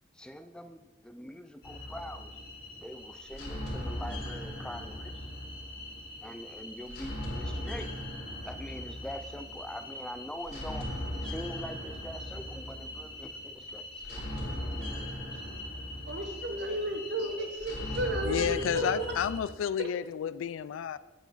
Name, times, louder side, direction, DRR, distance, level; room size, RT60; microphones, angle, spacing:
voice 1, 0.1-2.3 2.8-5.3 6.2-7.9 8.4-10.9 11.2-15.6, equal, 5° left, 9 dB, 0.4 m, -44 dB
sound 1, 1.6-19.4, left 1 dB, 55° left, 2.3 m, -39 dB
voice 2, 16.1-19.0, right 1 dB, 60° right, 5 dB, 0.9 m, -33 dB
voice 3, 18.2-21.0, left 8 dB, 90° left, 16 dB, 0.3 m, -31 dB
8.2 x 6.9 x 4.0 m, 1.2 s
head